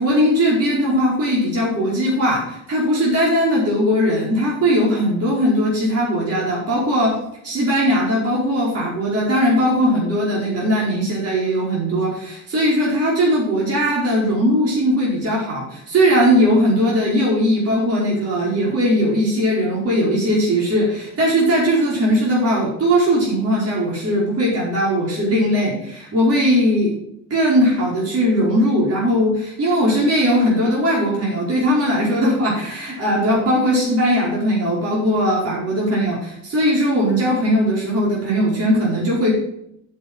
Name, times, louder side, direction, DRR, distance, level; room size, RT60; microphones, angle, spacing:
voice 1, 0.0-7.2 7.4-26.9 27.3-39.3, equal, 55° right, -5 dB, 5.0 m, -19 dB
8.0 x 7.8 x 6.3 m, 0.76 s
cardioid pair, 90°, 30 cm